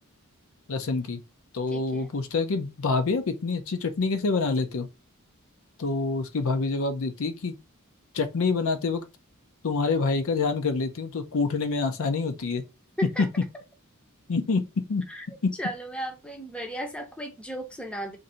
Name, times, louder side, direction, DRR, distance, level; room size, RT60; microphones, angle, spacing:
voice 1, 0.7-1.2 1.5-4.9 5.8-7.5 8.1-9.0 9.6-12.6 13.2-13.3 14.3-15.0 15.4-15.5, left 4 dB, 65° left, 0.5 m, -26 dB
voice 2, 1.7-2.1 13.0-13.3 15.1-15.3 15.6-18.2, right 1 dB, 5° left, 0.6 m, -35 dB
2.6 x 2.6 x 4.2 m
head